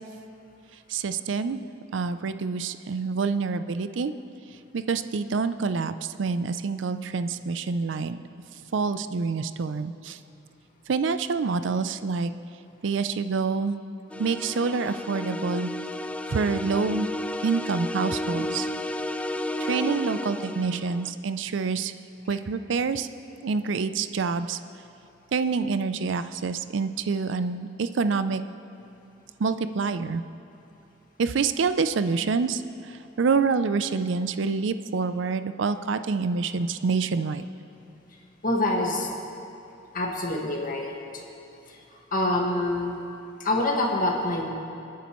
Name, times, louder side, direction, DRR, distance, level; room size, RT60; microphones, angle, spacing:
voice 1, 0.9-1.6 1.9-4.1 4.7-8.2 8.7-10.2 10.9-12.3 12.8-13.8 14.2-15.7 16.3-17.1 17.4-18.7 19.6-21.9 22.3-23.1 23.4-24.6 25.3-28.4 29.4-30.2 31.2-32.6 32.9-37.5, right 4 dB, 70° right, 11 dB, 0.5 m, -27 dB
sound 1, 14.1-21.1, left 1 dB, 5° left, 0.3 m, -32 dB
voice 2, 38.4-39.1 39.9-40.9 41.7-41.8 42.1-43.0 43.4-44.5, left 1 dB, 45° left, 0 dB, 1.8 m, -26 dB
27.5 x 9.4 x 3.1 m, 2.7 s
head